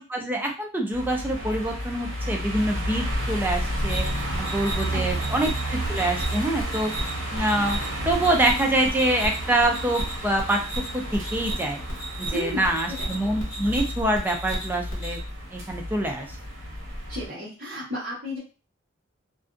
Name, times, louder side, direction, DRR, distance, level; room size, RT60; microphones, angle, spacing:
voice 1, 0.1-4.0 4.4-6.9 7.3-10.6 10.9-11.8 12.2-15.2 15.5-16.4, right 1 dB, 10° right, 2 dB, 0.3 m, -25 dB
sound 1, 0.9-17.3, right 1 dB, 70° right, 1.0 m, -31 dB
sound 2, 3.9-15.2, right 1 dB, 70° left, 1.0 m, -34 dB
voice 2, 4.9-5.3 12.3-13.2 17.1-18.4, left 1 dB, 50° right, -8 dB, 0.9 m, -34 dB
2.5 x 2.2 x 2.4 m, 0.34 s
head